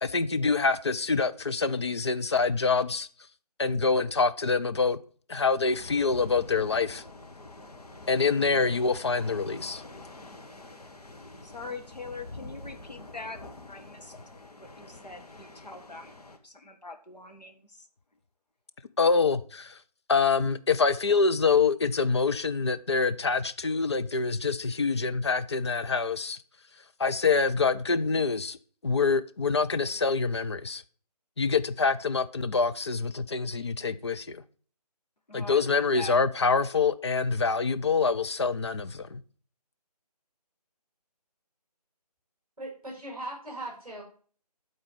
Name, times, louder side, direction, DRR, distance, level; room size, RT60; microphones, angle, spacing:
voice 1, 0.0-3.1 3.6-5.0 5.3-7.0 8.1-9.8 19.0-19.8 20.1-26.4 27.0-28.6 28.8-30.8 31.4-34.4 35.3-39.2, left 4 dB, 40° left, 0.5 m, -26 dB
sound 1, 5.6-16.4, left 2 dB, 70° left, 1.5 m, -46 dB
voice 2, 11.4-13.4 13.7-14.1 14.6-16.1 16.4-17.9 35.3-36.1, left 3 dB, 85° left, 1.5 m, -43 dB
voice 3, 42.6-44.0, right 1 dB, 5° right, 5.2 m, -39 dB
11.0 x 4.0 x 5.4 m
figure-of-eight pair, 155°, 21 cm